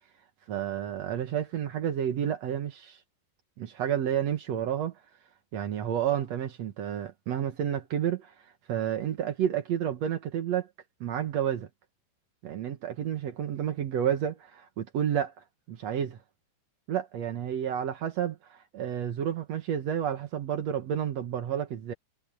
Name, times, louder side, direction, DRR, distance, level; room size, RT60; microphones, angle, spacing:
voice 1, 0.5-3.0 3.6-4.9 5.5-8.3 8.7-10.7 11.0-11.7 12.4-15.3 15.7-16.2 16.9-21.9, right 9 dB, 70° right, 1.6 m, -30 dB
omnidirectional pair, 4.9 m